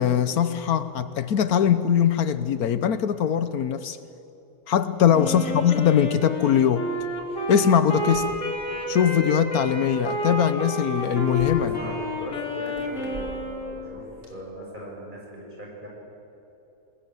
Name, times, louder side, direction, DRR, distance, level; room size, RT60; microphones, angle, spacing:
voice 1, 0.0-4.0 4.7-6.9 7.5-8.4 8.9-11.8, left 9 dB, 75° left, 13 dB, 1.3 m, -21 dB
Wind instrument woodwind instrument, 5.1-14.0, left 1 dB, 50° left, 3.9 m, -30 dB
voice 2, 5.3-5.7 11.6-15.9, equal, 30° right, -3 dB, 6.9 m, -39 dB
sound 1, 7.0-14.3, equal, 70° right, 4.5 m, -46 dB
27.0 x 20.5 x 7.7 m, 3.0 s
omnidirectional pair, 1.6 m